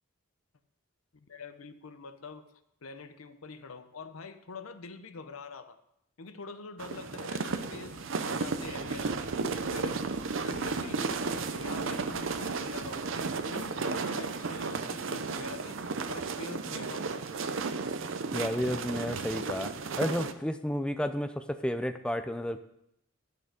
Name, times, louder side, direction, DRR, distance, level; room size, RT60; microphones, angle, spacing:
voice 1, 1.1-2.5 2.8-5.8 6.2-9.2 9.6-10.1 10.4-13.1 13.5-15.8 16.1-17.6, left 4 dB, 80° left, 10 dB, 0.8 m, -45 dB
sound 1, 6.8-20.3, right 4 dB, 65° right, 0.7 m, -34 dB
Thunder, 8.1-14.6, equal, 35° right, 1.1 m, -56 dB
voice 2, 18.3-22.6, equal, 5° left, 9 dB, 0.4 m, -32 dB
11.0 x 6.5 x 5.0 m, 0.79 s
head